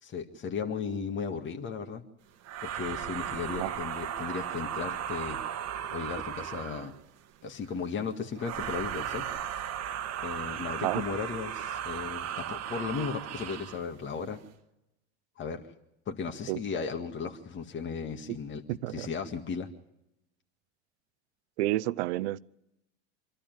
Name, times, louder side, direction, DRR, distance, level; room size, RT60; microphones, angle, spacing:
voice 1, 0.0-2.0 2.6-5.4 5.9-6.9 7.4-9.2 10.2-14.4 15.4-15.6 16.1-18.6 18.9-19.7, left 5 dB, 35° left, 2.0 m, -35 dB
sound 1, 2.4-7.0 8.4-13.8, right 9 dB, 50° right, 1.4 m, -36 dB
voice 2, 18.7-19.1 21.6-22.4, right 17 dB, 75° right, 0.8 m, -30 dB
26.5 x 12.5 x 9.3 m
supercardioid pair, 100°, 34 cm